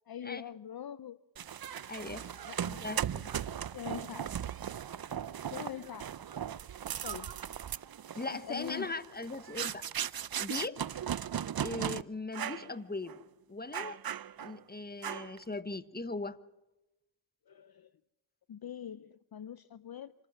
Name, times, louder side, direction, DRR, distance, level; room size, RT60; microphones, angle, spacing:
voice 1, 0.1-1.2 2.5-3.3 3.7-4.5 5.5-6.1 7.0-7.4 8.4-9.0 17.5-17.9 18.5-20.1, left 9 dB, 50° left, 15 dB, 0.6 m, -43 dB
sound 1, 1.4-12.0 12.3-12.7 13.1-13.2 13.7-14.6 15.0-15.4, right 9 dB, 50° right, 0.6 m, -38 dB
voice 2, 1.9-2.3 2.8-3.0 8.1-9.8 10.4-10.8 11.6-13.2 13.5-14.0 14.4-16.4, left 3 dB, 20° left, 12 dB, 1.2 m, -39 dB
26.5 x 14.5 x 7.3 m, 0.98 s
cardioid pair, 50°, 46 cm